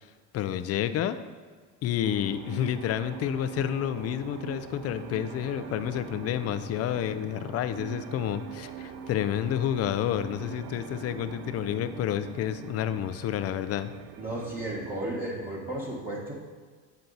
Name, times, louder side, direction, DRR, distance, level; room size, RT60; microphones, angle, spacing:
voice 1, 0.3-1.2 1.8-13.9, left 10 dB, 50° left, 11 dB, 0.5 m, -29 dB
sound 1, 2.0-15.4, right 7 dB, 55° right, 0.6 m, -43 dB
voice 2, 14.2-16.3, right 1 dB, 25° right, -5 dB, 1.3 m, -34 dB
8.1 x 4.4 x 4.0 m, 1.5 s
cardioid pair, 105°, 33 cm